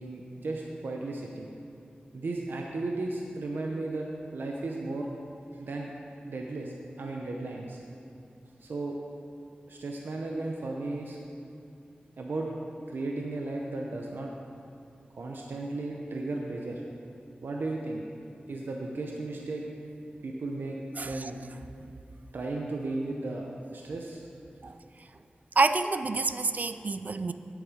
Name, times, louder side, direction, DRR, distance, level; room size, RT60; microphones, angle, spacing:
voice 1, 0.0-1.5 2.1-5.1 5.5-5.9 6.2-6.7 7.0-7.8 8.6-9.0 9.7-11.2 12.2-12.5 12.9-14.3 15.1-16.8 17.4-18.0 18.5-19.6 20.2-20.8 21.0-21.4 22.3-23.5 23.7-24.3, right 2 dB, 85° right, 0 dB, 0.8 m, -35 dB
voice 2, 21.0-21.3 24.6-24.8 25.6-27.3, right 3 dB, 55° right, 11 dB, 0.4 m, -27 dB
8.5 x 8.1 x 5.0 m, 2.5 s
wide cardioid pair, 65°, 3 cm